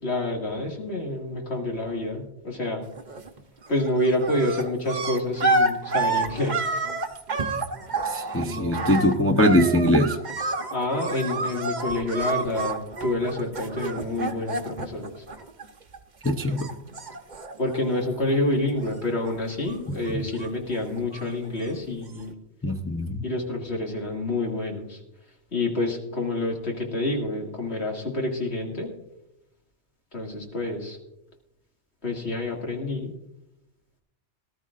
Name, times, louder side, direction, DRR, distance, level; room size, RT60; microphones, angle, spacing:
voice 1, 0.0-2.8 3.7-6.6 8.4-8.9 10.7-15.2 17.6-22.3 23.2-25.0 25.5-28.9 30.1-31.0 32.0-33.1, left 1 dB, 65° left, 0 dB, 2.4 m, -28 dB
sound 1, 2.9-3.4 3.7-16.0 16.2-18.4 18.6-19.3 19.6-21.4 22.1-22.2, right 2 dB, 40° right, 1.0 m, -29 dB
voice 2, 8.1-10.2 16.2-16.7 20.1-20.2 22.6-23.2, equal, 15° left, 3 dB, 0.5 m, -22 dB
19.5 x 12.5 x 2.5 m, 0.87 s
omnidirectional pair, 1.2 m